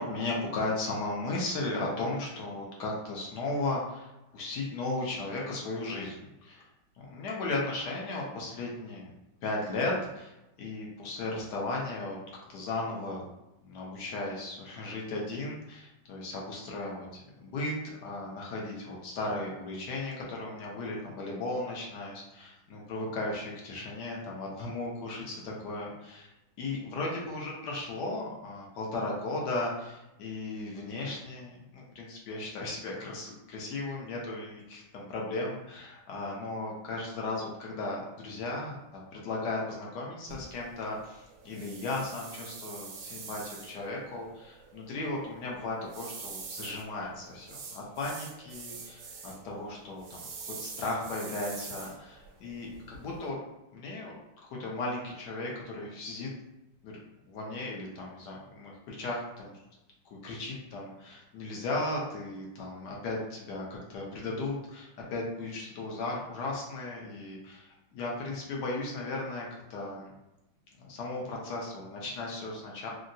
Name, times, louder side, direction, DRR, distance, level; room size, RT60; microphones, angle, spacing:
voice 1, 0.0-6.7 7.0-9.1 9.4-10.3 10.6-12.2 12.5-13.2 13.6-26.3 26.6-50.3 50.6-53.4 53.7-54.1 54.5-56.3 56.8-57.0 57.3-59.5 60.2-70.1 70.8-72.9, left 2 dB, 65° left, -2 dB, 1.1 m, -36 dB
sound 1, 40.3-53.3, right 5 dB, 85° right, 1.5 m, -46 dB
3.6 x 2.0 x 2.6 m, 0.94 s
omnidirectional pair, 2.2 m